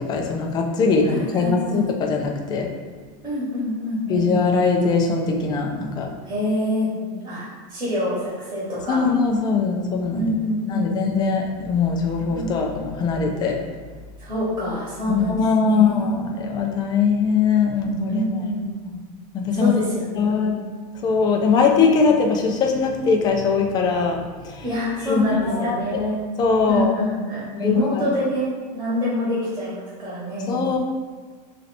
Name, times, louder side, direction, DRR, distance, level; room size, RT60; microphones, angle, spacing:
voice 1, 0.0-2.7 4.1-6.1 8.9-10.3 10.7-13.6 15.1-18.4 18.9-19.0 19.3-19.7 20.1-20.6 21.0-24.2 24.4-24.6 25.0-26.0 26.4-26.9 27.5-28.0 30.5-30.8, left 5 dB, 20° left, 1 dB, 0.4 m, -21 dB
voice 2, 1.0-1.9 3.2-4.3 6.2-9.0 10.1-11.1 12.3-12.5 14.2-16.1 18.1-18.9 19.5-20.5 24.6-26.2 26.7-30.6, left 1 dB, 15° right, -8 dB, 1.2 m, -26 dB
3.2 x 2.7 x 4.0 m, 1.4 s
supercardioid pair, 155°, 20 cm